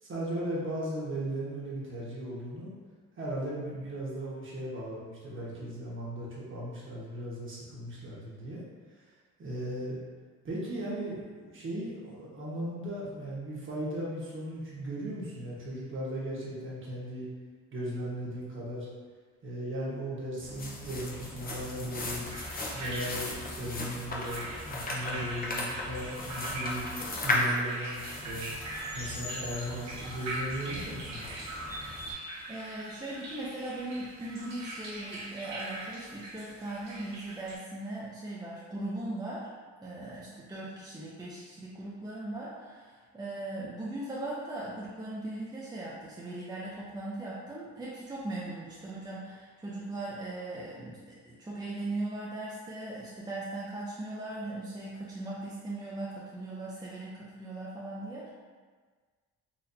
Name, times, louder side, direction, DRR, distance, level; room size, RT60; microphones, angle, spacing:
voice 1, 0.0-2.7 3.2-8.6 9.0-9.1 9.4-10.0 10.4-17.3 17.7-18.9 19.4-22.2 22.7-26.9 27.2-28.5 28.9-31.3, right 1 dB, 40° right, -6 dB, 1.3 m, -37 dB
sound 1, 20.4-32.1, left 1 dB, 30° left, 0.7 m, -36 dB
sound 2, 21.7-37.5, right 2 dB, 65° right, 1.0 m, -42 dB
voice 2, 32.5-39.5 39.8-58.3, right 2 dB, 15° right, -7 dB, 0.6 m, -39 dB
4.2 x 2.8 x 2.7 m, 1.5 s
cardioid pair, 90°, 30 cm